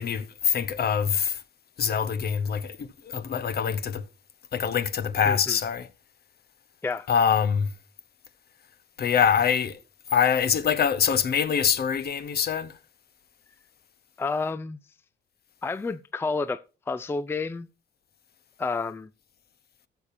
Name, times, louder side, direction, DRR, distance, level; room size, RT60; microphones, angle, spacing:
voice 1, 0.0-1.4 1.8-2.9 3.1-4.0 4.5-5.9 7.1-7.7 9.0-9.8 10.1-12.7, left 7 dB, 55° left, 0.9 m, -24 dB
voice 2, 5.3-5.6 6.8-7.1 14.2-14.8 15.6-16.6 16.9-17.7 18.6-19.1, left 4 dB, 10° left, 0.4 m, -30 dB
14.5 x 7.1 x 2.7 m
cardioid pair, 90°, 20 cm